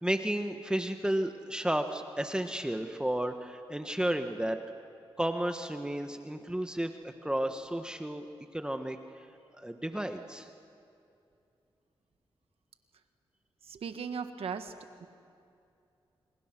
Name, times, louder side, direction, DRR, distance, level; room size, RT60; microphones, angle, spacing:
voice 1, 0.0-4.6 5.2-8.2 8.5-9.0 9.6-10.5, right 1 dB, 10° right, 6 dB, 1.5 m, -32 dB
voice 2, 13.6-14.7 15.0-15.1, right 6 dB, 80° right, 8 dB, 1.6 m, -37 dB
28.0 x 26.0 x 6.2 m, 2.6 s
cardioid pair, 65°, 10 cm